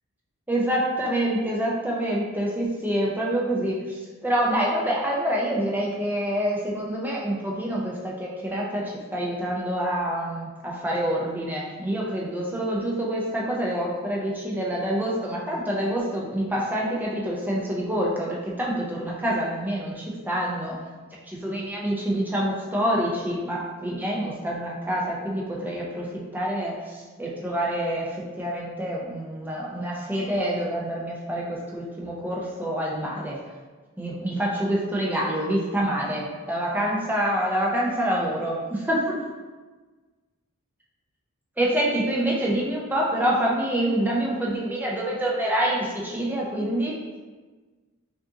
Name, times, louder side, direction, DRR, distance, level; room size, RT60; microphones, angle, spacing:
voice 1, 0.5-20.8 21.3-26.1 26.3-33.4 34.0-39.2 41.6-47.0, right 1 dB, 10° right, -4 dB, 0.6 m, -26 dB
4.9 x 2.5 x 2.8 m, 1.3 s
head